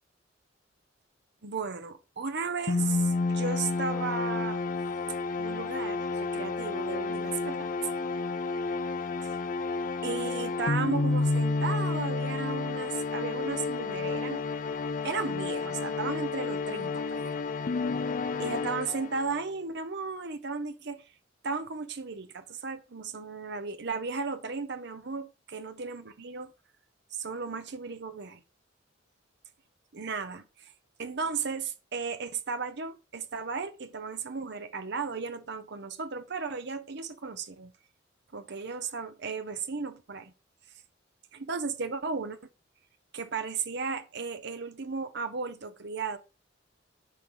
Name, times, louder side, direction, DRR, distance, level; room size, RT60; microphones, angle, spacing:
voice 1, 1.4-4.6 5.4-7.7 10.0-14.5 15.0-17.3 18.4-21.0 21.4-26.5 27.1-28.4 29.9-30.7 31.0-37.7 38.3-40.3 41.3-42.4 43.1-46.2, right 4 dB, 60° right, 0.9 m, -35 dB
sound 1, 2.7-19.4, left 3 dB, 45° left, 0.5 m, -30 dB
10.0 x 4.7 x 3.9 m
head